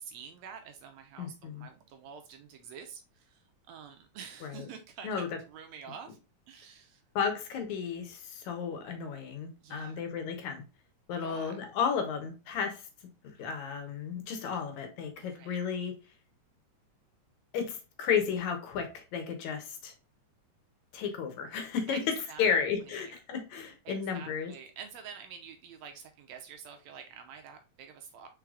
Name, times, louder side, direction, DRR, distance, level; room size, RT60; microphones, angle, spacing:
voice 1, 0.0-6.2 6.5-7.0 9.6-10.0 11.2-11.5 15.2-15.5 21.9-22.6 22.8-23.1 23.9-28.3, right 7 dB, 75° right, 1.7 m, -48 dB
voice 2, 1.2-1.7 4.4-4.7 5.0-5.3 7.2-10.6 11.1-12.9 13.2-16.0 17.5-19.9 20.9-24.5, left 7 dB, 75° left, 2.2 m, -33 dB
4.8 x 4.5 x 2.3 m
omnidirectional pair, 3.4 m